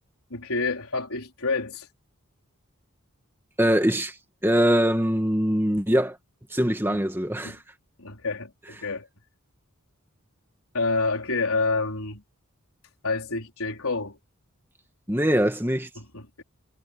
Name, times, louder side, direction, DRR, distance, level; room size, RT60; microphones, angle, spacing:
voice 1, 0.3-1.9 6.8-7.0 7.4-7.6 8.0-9.1 10.7-12.2 13.0-14.2 16.0-16.4, left 3 dB, 80° left, 4.0 m, -28 dB
voice 2, 3.6-4.2 4.4-6.2 6.5-7.6 15.1-15.9, equal, 10° right, 2.0 m, -22 dB
head